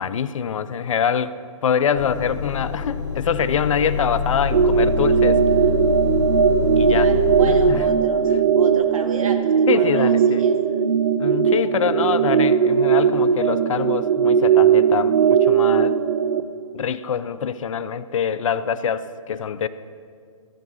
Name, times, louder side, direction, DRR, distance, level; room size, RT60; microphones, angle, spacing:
voice 1, 0.0-1.4 1.6-5.4 6.8-7.1 7.5-7.9 9.7-10.4 11.2-15.9 16.7-19.7, left 7 dB, 65° left, 15 dB, 0.4 m, -24 dB
Motor vehicle (road) / Engine starting / Idling, 2.0-7.7, left 5 dB, 35° left, 1.3 m, -26 dB
sound 1, 4.5-16.4, right 7 dB, 55° right, 0.5 m, -18 dB
voice 2, 6.9-10.5, right 5 dB, 70° right, 6 dB, 1.2 m, -34 dB
14.0 x 4.8 x 6.1 m, 2.2 s
hypercardioid pair, 140°, 18 cm